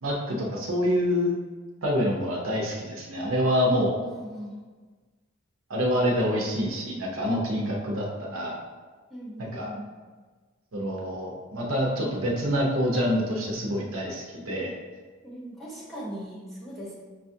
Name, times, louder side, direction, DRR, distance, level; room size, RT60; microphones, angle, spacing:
voice 1, 0.0-1.3 1.8-4.0 5.7-8.6 9.4-9.7 10.7-14.7, equal, 70° right, -1 dB, 0.7 m, -26 dB
voice 2, 4.1-4.6 9.1-9.8 15.2-17.0, equal, ahead, -8 dB, 0.9 m, -39 dB
5.5 x 2.3 x 2.7 m, 1.4 s
head